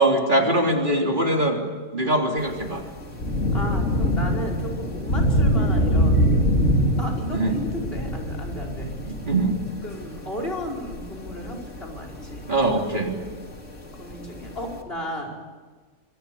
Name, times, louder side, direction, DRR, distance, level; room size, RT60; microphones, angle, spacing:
voice 1, 0.0-1.6 1.9-2.8 7.3-7.6 9.0-9.6 12.5-13.1, right 1 dB, 40° right, 2 dB, 3.7 m, -22 dB
Thunder / Rain, 2.4-14.8, equal, 80° left, 3.2 m, -25 dB
voice 2, 3.5-6.5 7.0-8.9 9.8-12.9 14.0-15.4, equal, 50° left, 3 dB, 5.5 m, -34 dB
27.0 x 23.5 x 8.6 m, 1.4 s
omnidirectional pair, 1.3 m